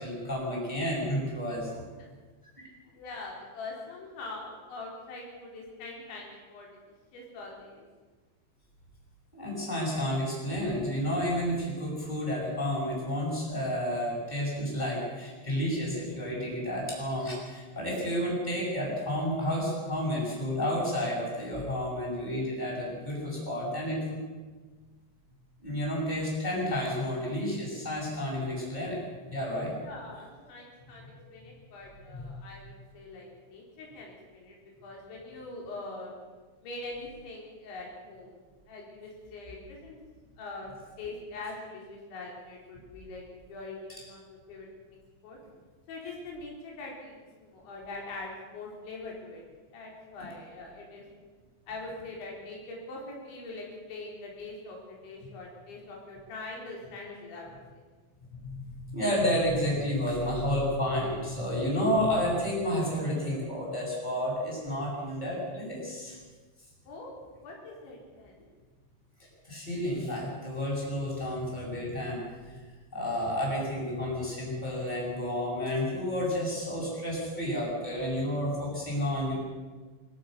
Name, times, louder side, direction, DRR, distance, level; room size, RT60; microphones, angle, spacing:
voice 1, 0.0-1.9 9.3-24.2 25.6-29.0 29.3-29.8 32.1-32.2 58.4-66.2 69.5-72.6 72.9-79.3, equal, 10° left, -4 dB, 7.9 m, -31 dB
voice 2, 2.9-6.7 7.1-7.8 29.8-36.2 36.6-38.4 38.7-40.0 40.4-40.7 41.0-43.2 43.5-45.4 45.9-49.4 49.7-51.0 51.7-57.8 66.9-68.5, left 2 dB, 80° left, -2 dB, 6.4 m, -43 dB
25.0 x 15.5 x 6.9 m, 1.4 s
omnidirectional pair, 5.2 m